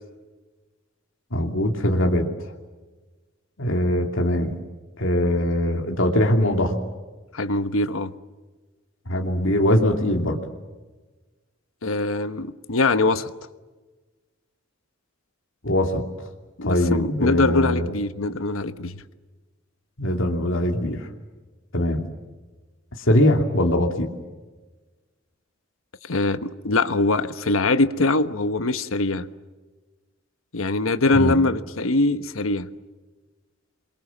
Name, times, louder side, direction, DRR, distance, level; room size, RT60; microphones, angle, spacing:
voice 1, 1.3-2.3 3.6-4.6 5.0-6.8 9.1-10.4 15.6-16.0 16.6-17.9 20.0-21.1 21.7-22.0 23.0-24.1 31.1-31.4, left 1 dB, 70° left, 2.8 m, -21 dB
voice 2, 7.3-8.1 11.8-13.3 16.6-19.0 26.0-29.3 30.5-32.7, left 2 dB, 85° left, 1.2 m, -22 dB
28.5 x 23.5 x 7.3 m
head